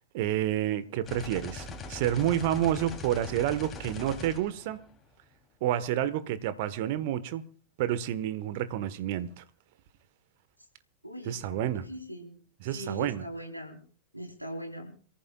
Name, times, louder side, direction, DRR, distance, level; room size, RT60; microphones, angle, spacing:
voice 1, 0.1-4.8 5.6-7.4 7.8-9.4 11.2-11.9 12.6-13.3, right 11 dB, 50° right, 1.3 m, -29 dB
sound 1, 1.0-5.2, left 3 dB, 20° left, 3.2 m, -41 dB
voice 2, 11.0-12.4 12.7-13.8 14.1-14.9, equal, 90° right, 4.0 m, -40 dB
28.0 x 14.5 x 2.4 m
figure-of-eight pair, 90°, 0 cm